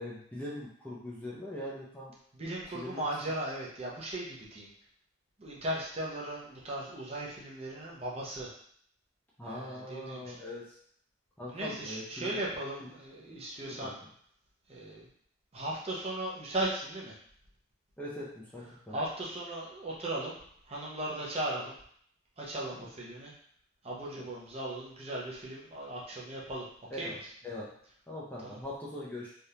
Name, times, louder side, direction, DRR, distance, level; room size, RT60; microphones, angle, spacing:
voice 1, 0.0-2.1 2.7-3.0 9.4-10.8 11.4-12.4 12.8-12.9 13.3-13.9 18.0-19.0 22.7-22.9 24.2-24.3 26.9-27.2 27.4-27.7 28.1-29.3, left 1 dB, 10° left, -6 dB, 0.5 m, -42 dB
voice 2, 2.3-4.7 5.4-8.5 9.4-10.3 11.5-13.9 14.7-15.1 15.5-17.2 18.9-20.4 20.6-21.7 22.4-23.3 23.8-26.7 27.0-27.2 28.4-28.6, right 1 dB, 30° right, -4 dB, 0.7 m, -37 dB
3.4 x 2.5 x 2.8 m, 0.63 s
head